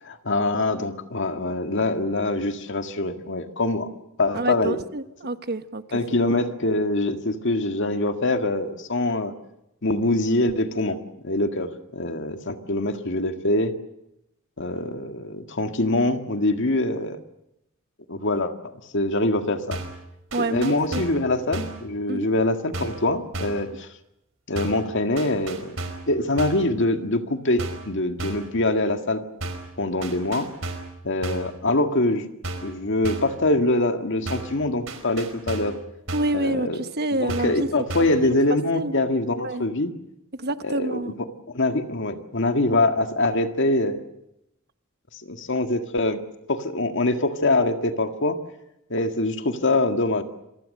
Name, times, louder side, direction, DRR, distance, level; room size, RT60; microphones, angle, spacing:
voice 1, 0.0-3.9 4.2-4.8 5.9-9.3 9.8-13.7 14.6-17.2 18.1-19.8 20.4-23.9 24.5-25.8 26.1-29.2 29.8-30.5 31.0-32.3 32.6-35.8 36.3-36.8 37.1-39.9 40.6-41.1 41.5-44.0 45.1-46.2 46.5-48.4 48.9-50.2, left 2 dB, 60° left, 7 dB, 1.9 m, -24 dB
voice 2, 4.3-5.8 20.3-21.0 22.1-22.3 36.1-37.7 38.2-38.3 38.7-38.9 39.4-39.6 40.4-41.1, right 2 dB, 50° right, 10 dB, 1.2 m, -27 dB
sound 1, 19.7-20.0 20.3-21.2 21.5-21.8 22.7-23.1 23.3-23.7 24.6-24.9 25.2-26.1 26.4-26.7 27.6-27.9 28.2-28.5 29.4-29.7 30.0-30.9 31.2-31.5 32.4-32.8 33.0-33.4 34.3-34.6 34.9-35.8 36.1-36.4 37.3-37.6 37.9-38.2, right 2 dB, 70° right, 4.8 m, -33 dB
27.5 x 23.5 x 6.7 m, 0.84 s
head